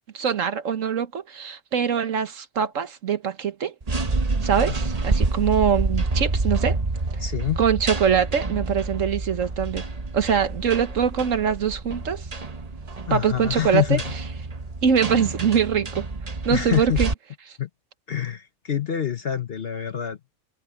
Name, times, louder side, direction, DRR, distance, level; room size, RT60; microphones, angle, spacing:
voice 1, 0.1-3.7 4.4-6.8 7.6-9.9 10.1-12.3 13.1-14.0 14.8-16.1 16.4-17.1, right 7 dB, 60° right, 1.4 m, -23 dB
sound 1, 3.8-17.1, right 3 dB, 30° right, 1.1 m, -28 dB
voice 2, 7.2-7.6 13.1-14.0 16.5-17.0 17.6-17.7 18.1-20.2, left 10 dB, 45° left, 1.0 m, -26 dB
omnidirectional pair, 1.5 m